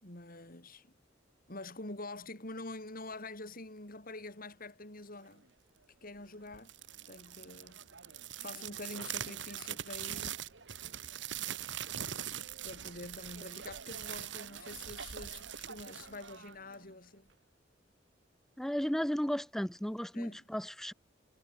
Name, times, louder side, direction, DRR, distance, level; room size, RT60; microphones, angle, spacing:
voice 1, 0.0-0.9 1.5-5.5 6.0-6.7 7.1-7.8 8.4-10.4 12.6-17.3 20.1-20.4, left 2 dB, 50° left, 5.3 m, -46 dB
sound 1, 6.5-16.9, right 10 dB, 70° right, 1.5 m, -42 dB
voice 2, 18.6-20.9, equal, ahead, 0.4 m, -34 dB
head